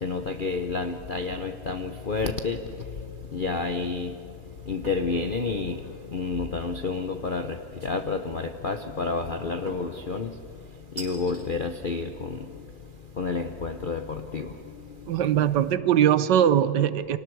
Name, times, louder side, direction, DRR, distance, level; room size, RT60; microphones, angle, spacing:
voice 1, 0.0-2.7 3.3-4.2 4.7-5.8 6.1-10.4 11.0-12.5 13.2-14.5 15.0-15.4, left 4 dB, 50° left, 0.6 m, -30 dB
sound 1, 4.8-5.1 5.6-6.1 7.8-8.3 9.7-10.0 11.0-11.4, right 2 dB, 35° right, 4.2 m, -42 dB
voice 2, 15.1-17.2, right 10 dB, 70° right, 1.3 m, -21 dB
30.0 x 25.0 x 4.7 m
omnidirectional pair, 2.0 m